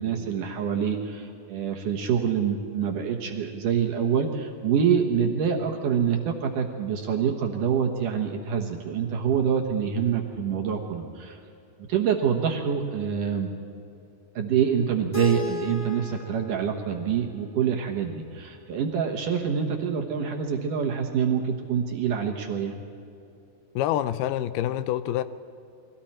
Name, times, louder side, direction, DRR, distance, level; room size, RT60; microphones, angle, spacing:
voice 1, 0.0-11.4 11.9-13.5 14.4-22.8, right 7 dB, 65° right, 2 dB, 2.6 m, -26 dB
Keyboard (musical), 15.1-18.1, left 2 dB, 5° right, 5.2 m, -35 dB
voice 2, 23.8-25.2, left 12 dB, 90° left, 13 dB, 2.7 m, -26 dB
29.5 x 22.0 x 4.4 m, 2.7 s
omnidirectional pair, 4.4 m